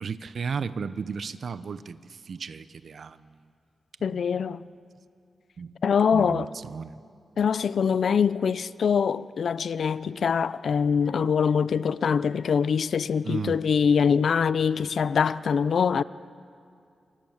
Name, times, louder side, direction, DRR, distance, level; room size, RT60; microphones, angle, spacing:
voice 1, 0.0-3.3 4.0-4.4 5.6-5.7 6.1-7.0 13.2-13.6, right 5 dB, 65° right, 0.8 m, -35 dB
voice 2, 4.0-4.6 5.8-6.5 7.4-16.0, left 6 dB, 70° left, 0.6 m, -24 dB
27.0 x 25.0 x 7.3 m
wide cardioid pair, 100°, 0 cm